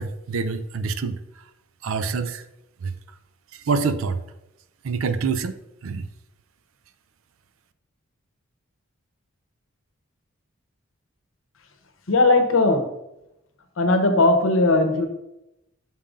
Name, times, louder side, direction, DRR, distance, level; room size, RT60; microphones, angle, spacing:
voice 1, 0.0-1.4 1.8-2.4 2.8-2.9 3.5-4.2 4.8-6.1, right 4 dB, 70° right, 12 dB, 0.4 m, -26 dB
voice 2, 12.1-12.9 13.8-15.1, left 2 dB, 65° left, 6 dB, 0.8 m, -18 dB
5.5 x 3.7 x 5.2 m, 0.87 s
head